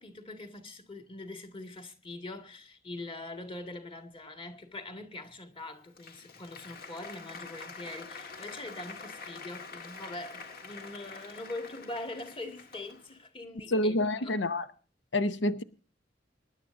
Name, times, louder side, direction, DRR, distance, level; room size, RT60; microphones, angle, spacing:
voice 1, 0.0-14.0 14.2-14.4, left 2 dB, 30° left, 2.0 m, -43 dB
Applause, 5.6-13.2, left 4 dB, 55° left, 1.7 m, -46 dB
voice 2, 13.7-14.7 15.1-15.6, left 1 dB, 80° left, 0.9 m, -28 dB
25.5 x 11.0 x 2.6 m
head